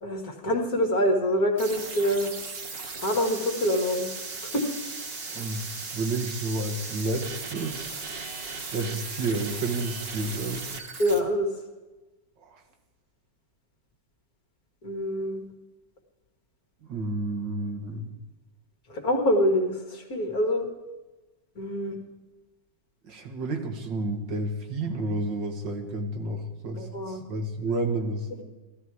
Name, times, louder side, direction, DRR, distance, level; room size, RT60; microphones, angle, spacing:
voice 1, 0.0-2.3 3.0-4.1 4.5-4.6 11.0-11.5 14.8-15.5 18.9-20.7 21.6-22.0 26.8-27.2 28.3-28.4, equal, 55° left, 3 dB, 2.1 m, -25 dB
sound 1, 1.6-11.2, right 4 dB, 40° right, 1.1 m, -37 dB
voice 2, 5.3-8.1 8.7-10.7 12.4-12.6 16.8-18.1 23.0-28.3, right 2 dB, 75° right, 4 dB, 2.1 m, -31 dB
15.5 x 12.5 x 4.8 m, 1.2 s
omnidirectional pair, 2.0 m